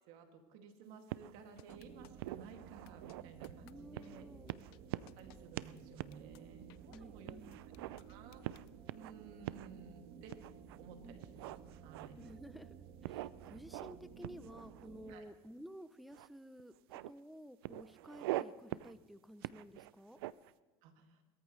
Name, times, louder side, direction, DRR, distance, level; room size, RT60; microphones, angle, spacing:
voice 1, 0.1-4.2 5.2-8.5 8.9-10.3 10.8-11.5 11.8-12.2 15.1-15.2 20.8-21.2, right 5 dB, 75° right, 4 dB, 2.5 m, -55 dB
sound 1, 1.1-1.8 2.2-3.5 4.0-4.2 4.5-5.3 5.6-5.7 6.0-6.2 6.6-6.7 7.3-8.0 8.4-9.1 9.5-9.7 10.3-10.8 11.2-12.3 13.0-14.0 14.2-15.1 16.1-16.3 16.6-17.1 17.6-18.4 18.7-18.9 19.4-20.5, right 17 dB, 90° right, 0.4 m, -43 dB
sound 2, 1.6-2.3 2.9-3.2 3.4-3.7 4.0-4.1 4.5-4.8 5.1-5.4 5.8-5.9 6.1-6.4 6.7-7.0 7.5-8.7, left 20 dB, 85° left, 0.5 m, -63 dB
sound 3, 1.7-15.2, right 7 dB, 55° right, 1.6 m, -55 dB
voice 2, 3.6-4.6 6.9-7.6 11.0-11.2 12.2-20.2, equal, ahead, 14 dB, 0.7 m, -53 dB
21.0 x 14.0 x 3.3 m, 1.3 s
supercardioid pair, 110°, 12 cm